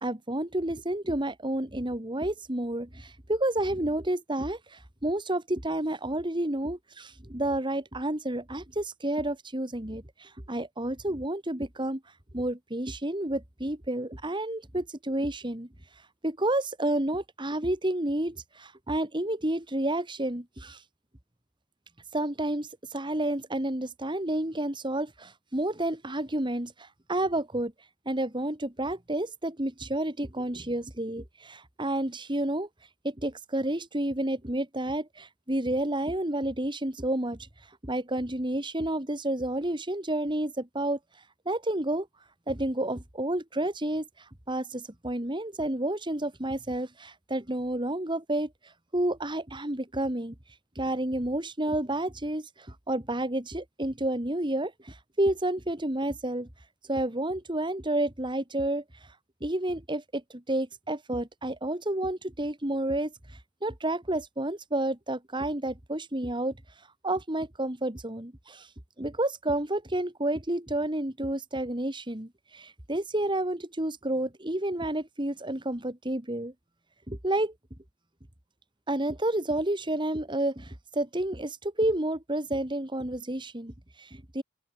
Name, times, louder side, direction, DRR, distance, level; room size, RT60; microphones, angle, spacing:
voice 1, 0.0-12.0 12.3-15.7 16.2-20.8 22.1-27.7 28.1-32.7 33.0-37.5 37.8-41.0 41.5-42.1 42.5-50.3 50.8-56.5 56.9-58.8 59.4-63.1 63.6-66.5 67.0-68.7 69.0-76.5 77.1-77.5 78.9-84.4, right 1 dB, 25° right, 2.4 m, -30 dB
open air
head